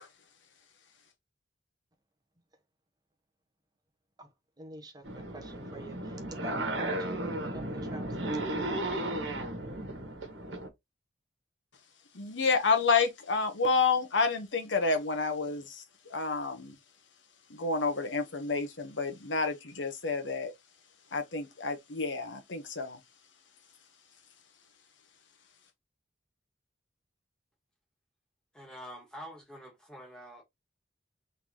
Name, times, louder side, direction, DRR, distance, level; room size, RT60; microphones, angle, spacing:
voice 1, 4.6-8.4, equal, 20° right, 1.0 m, -47 dB
sound 1, 5.0-10.7, right 1 dB, 80° right, 1.5 m, -35 dB
voice 2, 12.1-15.8 16.1-16.8 17.5-20.5 21.1-23.0, left 4 dB, 80° left, 1.1 m, -29 dB
voice 3, 28.5-30.4, equal, 5° left, 2.0 m, -46 dB
3.9 x 3.5 x 3.0 m
head